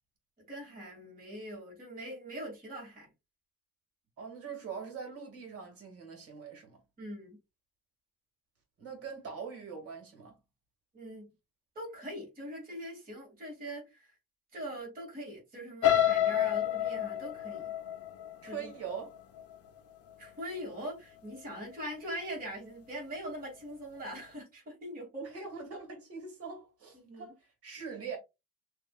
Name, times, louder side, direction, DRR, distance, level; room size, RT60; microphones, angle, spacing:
voice 1, 0.5-3.1 7.0-7.4 10.9-11.3 11.7-14.1 14.5-17.7 18.4-18.7 20.2-25.2 27.0-27.3, equal, 30° right, 2.7 m, -42 dB
voice 2, 4.2-6.8 8.8-10.4 18.4-19.2 25.2-28.2, right 6 dB, 55° right, 2.1 m, -43 dB
sound 1, 15.8-19.8 20.3-20.6 20.9-21.0, left 11 dB, 55° left, 0.7 m, -29 dB
6.3 x 2.9 x 2.4 m
cardioid pair, 175°, 29 cm